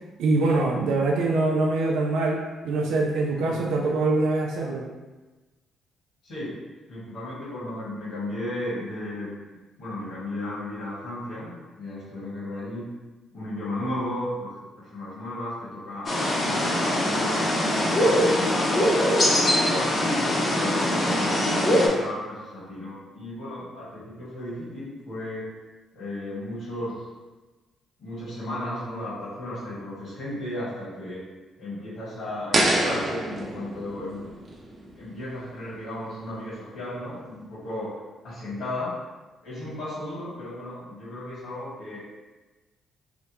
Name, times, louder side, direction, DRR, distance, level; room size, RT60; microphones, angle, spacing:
voice 1, 0.2-4.8, right 2 dB, 85° right, 0 dB, 0.4 m, -24 dB
voice 2, 3.5-3.8 6.2-6.6 6.9-9.3 9.8-12.9 13.3-18.4 19.2-25.5 25.9-26.9 28.0-31.2 31.6-34.3 34.9-38.0 38.2-39.0 39.4-42.0, left 1 dB, 70° left, -10 dB, 1.5 m, -35 dB
sound 1, 16.1-21.9, left 1 dB, 35° left, 0.7 m, -22 dB
sound 2, 32.5-35.6, right 1 dB, 40° right, 0.7 m, -27 dB
3.4 x 2.1 x 2.9 m, 1.2 s
cardioid pair, 90°, 0 cm